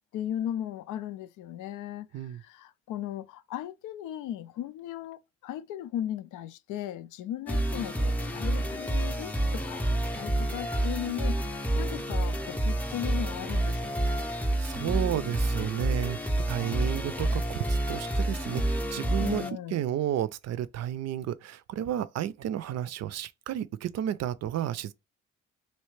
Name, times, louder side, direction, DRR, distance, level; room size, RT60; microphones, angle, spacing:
voice 1, 0.1-2.1 2.3-9.8 10.1-14.2 19.2-19.8, left 11 dB, 85° left, 0.5 m, -37 dB
sound 1, 7.5-19.5, right 1 dB, 5° left, 0.6 m, -29 dB
voice 2, 14.6-19.4 19.7-24.9, right 11 dB, 60° right, 0.4 m, -32 dB
3.2 x 2.8 x 3.1 m
cardioid pair, 90°, 30 cm